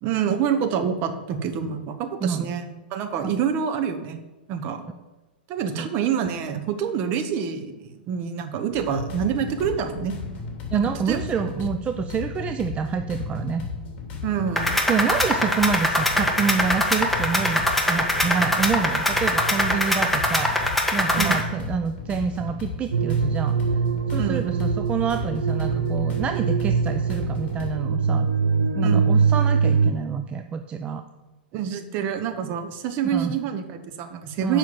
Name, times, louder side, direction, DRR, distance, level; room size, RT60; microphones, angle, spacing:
voice 1, 0.0-4.2 4.5-4.8 5.5-10.2 10.7-11.2 14.2-14.8 21.2-21.5 24.2-24.5 28.8-29.1 31.5-34.6, right 7 dB, 40° right, 7 dB, 1.2 m, -27 dB
voice 2, 2.2-2.5 3.2-3.3 5.7-5.9 10.7-13.6 14.9-17.6 17.9-23.5 24.1-28.3 28.7-31.0 33.0-33.3 34.4-34.6, right 6 dB, 20° right, 7 dB, 0.5 m, -27 dB
sound 1, 8.7-27.7, left 4 dB, 35° left, 2.9 m, -35 dB
sound 2, 14.6-21.4, left 1 dB, ahead, 1.5 m, -23 dB
sound 3, 22.9-29.9, right 5 dB, 85° right, 0.6 m, -23 dB
7.5 x 5.7 x 7.4 m, 1.1 s
hypercardioid pair, 110°, 5 cm